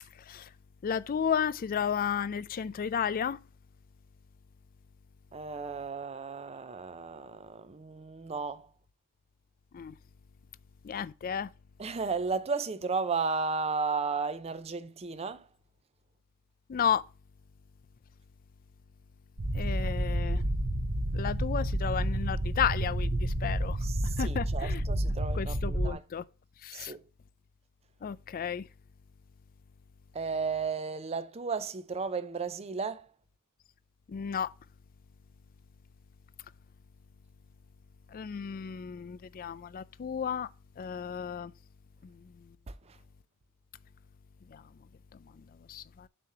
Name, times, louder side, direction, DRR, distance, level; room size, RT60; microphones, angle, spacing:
voice 1, 0.1-0.5 0.8-3.4 9.7-10.0 10.8-11.5 16.7-17.0 19.5-20.4 21.1-23.9 24.2-24.8 25.3-26.2 26.6-27.0 28.0-28.7 34.1-34.5 38.1-40.5 40.8-41.5 42.0-42.6 44.5-44.7 45.1-46.1, left 7 dB, 40° left, 0.3 m, -33 dB
voice 2, 5.3-8.7 11.8-15.5 23.8-26.0 26.7-27.0 30.1-33.1 42.7-43.0, right 4 dB, 30° right, 0.5 m, -34 dB
sound 1, 19.4-25.9, right 1 dB, 45° right, 0.9 m, -30 dB
7.6 x 3.1 x 5.5 m
head